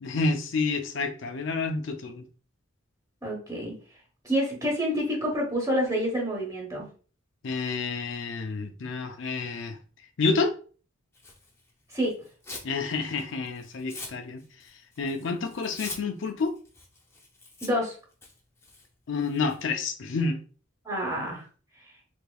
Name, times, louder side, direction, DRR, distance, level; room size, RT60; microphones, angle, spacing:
voice 1, 0.0-2.2 7.4-9.8 10.2-10.5 12.6-14.4 15.0-16.5 19.1-20.4, left 4 dB, 65° left, 0.5 m, -29 dB
voice 2, 3.2-3.7 4.2-6.9 11.9-12.1 17.6-17.9 20.8-21.4, equal, 15° right, 1.1 m, -28 dB
Tearing, 11.1-12.7 13.1-19.6, left 3 dB, 15° left, 0.6 m, -45 dB
3.5 x 3.3 x 2.3 m
head